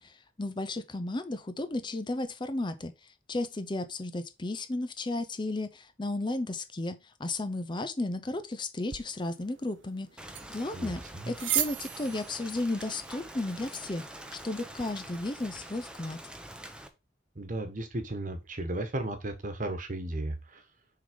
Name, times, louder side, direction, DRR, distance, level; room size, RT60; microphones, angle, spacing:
voice 1, 0.0-11.0 11.3-16.2, left 2 dB, 25° left, 0.6 m, -34 dB
sound 1, 8.9-14.9, right 12 dB, 85° right, 0.8 m, -38 dB
Rain, 10.2-16.9, right 1 dB, 5° right, 0.8 m, -45 dB
voice 2, 10.7-11.3 17.3-20.6, right 1 dB, 45° right, 1.3 m, -35 dB
6.5 x 3.9 x 5.2 m
head